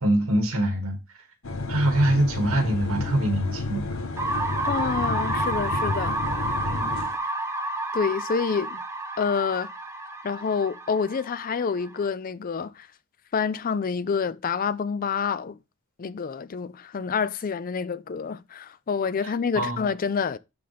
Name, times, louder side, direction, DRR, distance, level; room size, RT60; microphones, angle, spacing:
voice 1, 0.0-1.0 1.7-3.8 6.7-6.9 19.2-19.8, right 1 dB, 75° right, 2.2 m, -24 dB
sound 1, 1.4-7.2, left 3 dB, 65° left, 1.0 m, -31 dB
sound 2, 4.2-12.0, right 2 dB, 15° right, 0.7 m, -30 dB
voice 2, 4.6-6.5 7.9-8.8 9.2-9.7 10.2-12.9 13.3-15.6 16.0-20.4, left 6 dB, 40° left, 0.4 m, -27 dB
11.5 x 4.0 x 3.4 m
head